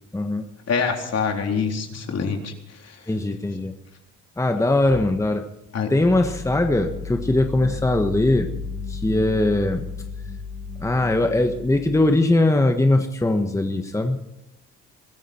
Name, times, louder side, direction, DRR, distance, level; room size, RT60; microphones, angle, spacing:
voice 1, 0.1-0.4 3.1-3.7 4.4-5.4 5.9-8.5 8.9-9.9 10.8-14.2, left 2 dB, 10° left, 5 dB, 1.5 m, -20 dB
voice 2, 0.7-2.5 2.8-3.0 4.6-4.7 5.7-5.9, left 5 dB, 55° left, 2 dB, 3.9 m, -25 dB
sound 1, 6.0-12.2, left 4 dB, 30° left, 6.2 m, -34 dB
23.0 x 13.5 x 4.5 m, 0.90 s
cardioid pair, 90°, 30 cm